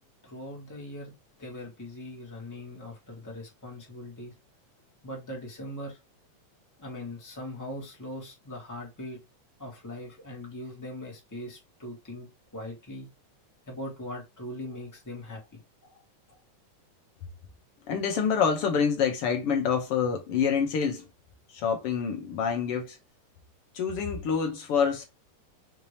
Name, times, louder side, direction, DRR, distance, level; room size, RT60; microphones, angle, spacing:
voice 1, 0.2-1.1 1.4-4.3 5.0-6.0 6.8-9.2 9.6-13.1 13.7-16.0 16.3-16.4, left 1 dB, 10° left, 1.0 m, -40 dB
voice 2, 17.9-21.0 21.5-23.0 23.7-25.1, left 6 dB, 70° left, 1.4 m, -27 dB
5.8 x 2.8 x 3.3 m
omnidirectional pair, 3.6 m